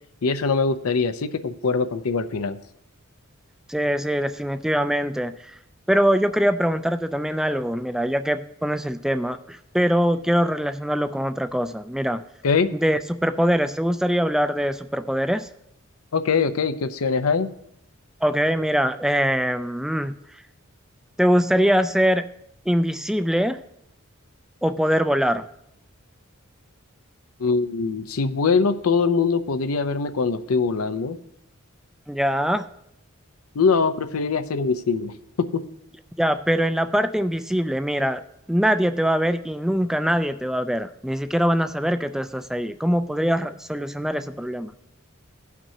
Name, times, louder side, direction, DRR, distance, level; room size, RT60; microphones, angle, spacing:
voice 1, 0.2-2.6 12.4-12.7 16.1-17.5 27.4-31.2 33.5-35.1 35.4-35.6, left 4 dB, 90° left, 11 dB, 0.6 m, -22 dB
voice 2, 3.7-5.6 5.9-12.2 12.7-15.5 18.2-20.1 21.2-22.2 22.7-23.6 24.6-25.5 32.1-32.7 36.2-38.2 38.5-44.7, equal, ahead, 10 dB, 0.3 m, -23 dB
17.5 x 6.0 x 2.8 m, 0.74 s
head